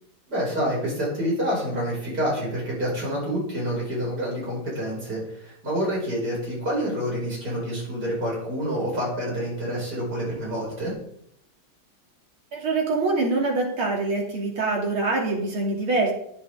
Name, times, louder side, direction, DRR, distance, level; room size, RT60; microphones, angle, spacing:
voice 1, 0.3-10.9, equal, 50° right, -5 dB, 6.2 m, -28 dB
voice 2, 12.5-16.1, right 3 dB, 80° right, -1 dB, 3.5 m, -24 dB
11.0 x 10.5 x 3.6 m, 0.72 s
omnidirectional pair, 2.2 m